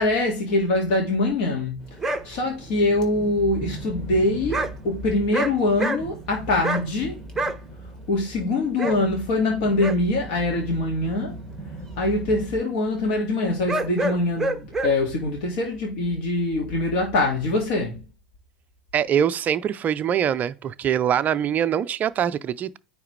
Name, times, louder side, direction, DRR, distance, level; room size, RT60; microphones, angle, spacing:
voice 1, 0.0-1.8 2.2-7.2 8.1-11.4 12.0-18.0, left 2 dB, 55° left, 1.9 m, -23 dB
sound 1, 1.8-12.6, right 2 dB, 10° left, 2.2 m, -39 dB
sound 2, 2.0-2.2 4.5-4.7 5.1-5.5 5.8-6.2 6.6-6.8 7.4-7.6 8.8-9.0 9.8-10.0 13.7-14.9, right 2 dB, 10° right, 0.8 m, -25 dB
voice 2, 18.9-22.8, right 9 dB, 30° right, 0.4 m, -23 dB
9.4 x 3.2 x 3.1 m
hypercardioid pair, 100°, 6 cm